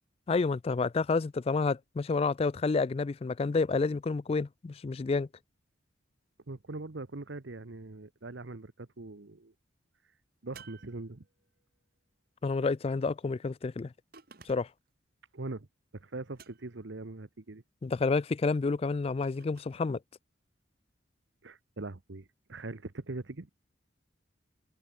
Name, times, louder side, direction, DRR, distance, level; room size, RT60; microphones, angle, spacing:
voice 1, 0.3-5.3 12.4-13.9 14.5-14.7 17.8-20.0, left 4 dB, 30° left, 0.3 m, -29 dB
voice 2, 6.5-9.5 10.4-11.2 15.3-15.7 15.9-17.6 21.4-23.5, right 2 dB, 65° right, 1.0 m, -41 dB
sound 1, 10.5-11.6 14.1-14.9 16.3-17.0 19.2-19.9, right 6 dB, 50° right, 2.4 m, -55 dB
head